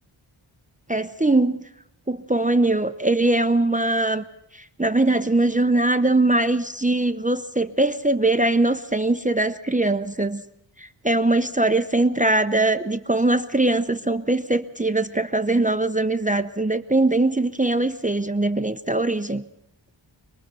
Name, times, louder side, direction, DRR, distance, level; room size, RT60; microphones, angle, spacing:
voice 1, 0.9-1.6 2.1-4.2 4.8-10.4 11.0-19.4, right 2 dB, 15° right, 9 dB, 0.9 m, -21 dB
26.0 x 19.5 x 6.9 m, 0.81 s
wide cardioid pair, 55°, 48 cm